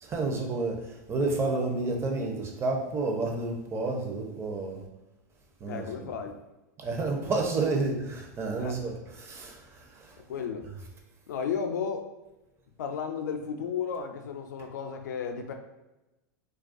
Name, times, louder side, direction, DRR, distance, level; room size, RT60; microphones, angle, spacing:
voice 1, 0.0-4.8 5.6-5.9 6.8-10.2, right 3 dB, 25° right, 1 dB, 0.5 m, -30 dB
voice 2, 5.7-6.4 8.6-8.8 10.3-10.7 11.3-12.1 12.8-15.5, left 6 dB, 80° left, 5 dB, 0.4 m, -33 dB
2.3 x 2.2 x 2.5 m, 0.99 s
hypercardioid pair, 105°, 10 cm